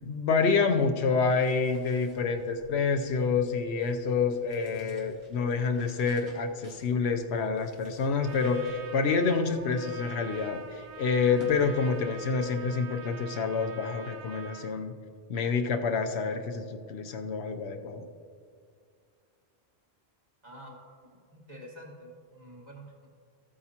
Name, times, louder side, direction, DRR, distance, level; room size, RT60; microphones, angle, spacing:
voice 1, 0.0-14.9 15.3-18.1, left 5 dB, 75° left, 6 dB, 0.9 m, -28 dB
sound 1, 1.2-12.3, right 1 dB, 80° right, 1.9 m, -52 dB
Trumpet, 8.2-14.7, right 5 dB, 60° right, 0.8 m, -45 dB
voice 2, 20.4-20.8 21.0-23.1, equal, 40° right, -3 dB, 1.9 m, -48 dB
14.5 x 8.6 x 2.8 m, 2.2 s
omnidirectional pair, 1.1 m